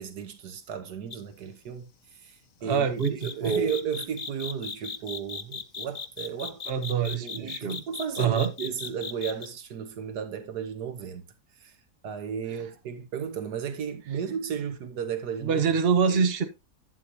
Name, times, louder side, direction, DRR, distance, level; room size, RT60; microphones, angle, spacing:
voice 1, 0.0-6.6 7.2-11.2 11.6-11.8 12.0-15.6 16.1-16.3, right 7 dB, 75° right, 1.6 m, -34 dB
sound 1, 1.1-1.3 3.0-9.5, left 6 dB, 65° left, 0.4 m, -37 dB
voice 2, 2.6-3.7 6.7-7.8 8.2-8.5 15.4-16.4, right 6 dB, 40° right, 1.3 m, -25 dB
11.5 x 7.8 x 2.8 m
omnidirectional pair, 1.8 m